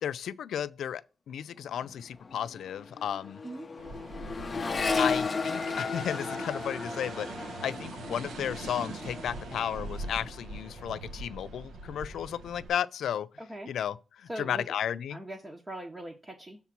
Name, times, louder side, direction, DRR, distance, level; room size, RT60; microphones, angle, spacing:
voice 1, 0.0-3.4 5.0-13.3 13.7-15.2, left 9 dB, 90° left, 0.5 m, -34 dB
Accelerating revving vroom, 1.7-1.9 2.2-9.7 10.0-10.7, left 4 dB, 25° left, 0.6 m, -34 dB
sound 1, 3.8-12.7, right 2 dB, 80° right, 1.0 m, -42 dB
voice 2, 13.4-13.7 14.3-14.7 15.1-16.6, right 1 dB, 15° right, 0.9 m, -41 dB
7.3 x 3.6 x 5.9 m
wide cardioid pair, 180°, 0 cm